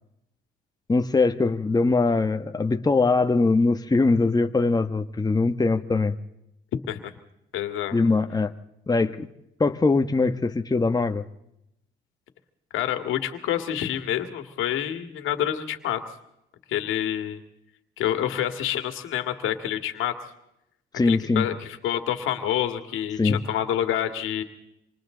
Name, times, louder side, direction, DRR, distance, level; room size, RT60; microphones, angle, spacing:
voice 1, 0.9-6.1 7.9-8.5 8.9-9.3 9.6-11.2 20.9-21.5 23.2-23.4, left 3 dB, 20° left, 7 dB, 1.2 m, -22 dB
voice 2, 7.5-8.0 12.7-16.0 16.7-17.4 18.0-20.1 21.0-24.4, left 11 dB, 90° left, 7 dB, 2.2 m, -27 dB
27.5 x 26.5 x 3.9 m, 0.82 s
cardioid pair, 90°, 20 cm